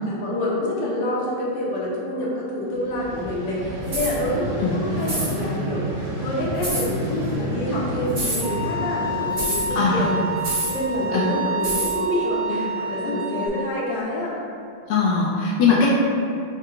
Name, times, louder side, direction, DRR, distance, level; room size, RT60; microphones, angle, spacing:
voice 1, 0.0-5.8 6.2-10.2 10.6-14.4, left 1 dB, 65° left, -5 dB, 1.5 m, -27 dB
Vehicle, 2.7-11.7, right 1 dB, 60° right, 1.0 m, -31 dB
sound 1, 3.9-4.2 5.0-5.3 6.6-6.9 8.1-8.5 9.4-9.7 10.4-10.8 11.6-12.0, right 1 dB, 35° right, 1.1 m, -27 dB
Bowed string instrument, 8.4-13.5, right 2 dB, 30° left, 0.9 m, -28 dB
voice 2, 9.7-10.1 11.1-11.3 14.9-15.9, left 5 dB, 85° left, -5 dB, 1.5 m, -20 dB
4.9 x 2.3 x 4.5 m, 2.5 s
omnidirectional pair, 2.3 m